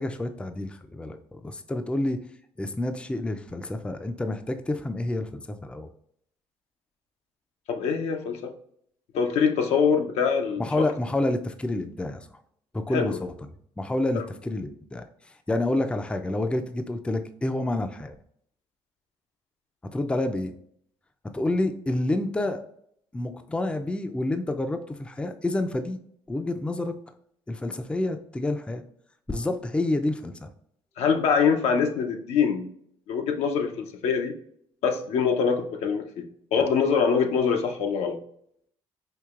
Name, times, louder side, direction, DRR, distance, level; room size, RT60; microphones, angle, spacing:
voice 1, 0.0-2.3 2.6-5.9 10.6-12.3 12.7-13.5 13.8-18.1 19.9-20.5 21.3-22.7 23.1-26.0 26.3-26.9 27.5-28.8 29.3-30.5, left 2 dB, 10° left, 7 dB, 0.4 m, -28 dB
voice 2, 7.7-8.5 9.1-10.6 12.9-13.2 14.1-14.2 31.0-32.7 33.1-34.4 34.8-38.2, left 6 dB, 75° left, 4 dB, 0.6 m, -24 dB
4.6 x 2.8 x 2.4 m, 0.67 s
supercardioid pair, 80°, 11 cm